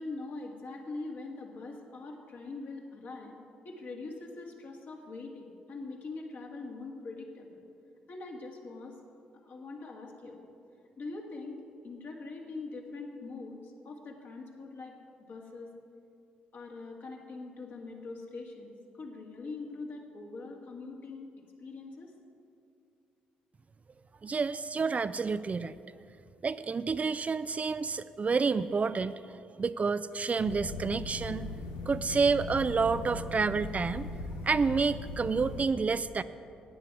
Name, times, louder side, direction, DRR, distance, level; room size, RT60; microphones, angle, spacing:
voice 1, 0.0-3.4 3.6-7.6 8.1-9.0 9.4-10.5 11.0-15.0 15.3-15.7 16.5-21.3 21.6-22.1, left 3 dB, 55° left, 0 dB, 2.1 m, -43 dB
voice 2, 24.2-25.7 26.4-29.2 29.6-31.5 31.9-34.1 34.4-36.2, right 4 dB, 35° right, 14 dB, 0.4 m, -29 dB
sound 1, 30.4-35.7, left 3 dB, 85° left, 0.9 m, -39 dB
12.5 x 9.6 x 6.0 m, 2.6 s
hypercardioid pair, 50°, 4 cm